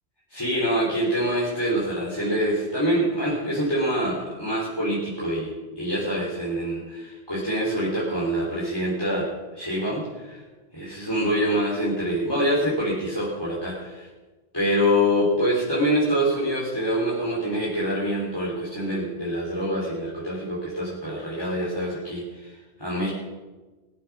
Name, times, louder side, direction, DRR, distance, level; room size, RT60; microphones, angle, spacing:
voice 1, 0.3-10.4 10.7-14.1 14.5-23.1, equal, 20° left, -8 dB, 4.1 m, -25 dB
22.5 x 8.3 x 6.3 m, 1.2 s
omnidirectional pair, 1.2 m